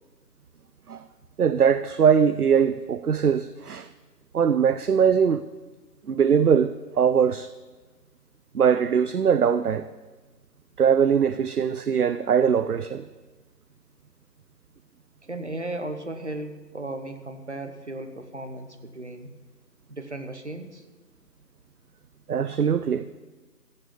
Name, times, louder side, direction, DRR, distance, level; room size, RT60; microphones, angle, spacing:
voice 1, 1.4-3.9 4.3-5.4 6.1-7.5 8.5-9.9 10.8-13.1 22.3-23.1, right 7 dB, 65° right, 0.5 m, -21 dB
voice 2, 15.3-19.3 19.9-20.8, right 2 dB, 45° right, 1.1 m, -35 dB
14.5 x 6.6 x 8.3 m
figure-of-eight pair, 180°, 49 cm